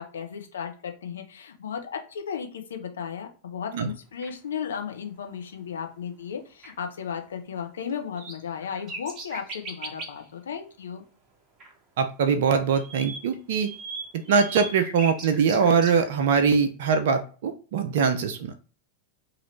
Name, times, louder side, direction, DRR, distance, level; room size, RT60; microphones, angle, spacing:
voice 1, 0.0-11.0, left 7 dB, 65° left, 5 dB, 0.6 m, -35 dB
sound 1, 4.2-4.3 6.6-6.7 7.9-10.2 11.6-11.7 12.0-16.1, right 3 dB, 30° right, 0.9 m, -39 dB
voice 2, 12.0-13.7 14.1-18.5, right 6 dB, 55° right, 7 dB, 0.4 m, -22 dB
2.9 x 2.4 x 3.1 m, 0.39 s
figure-of-eight pair, 90°, 0 cm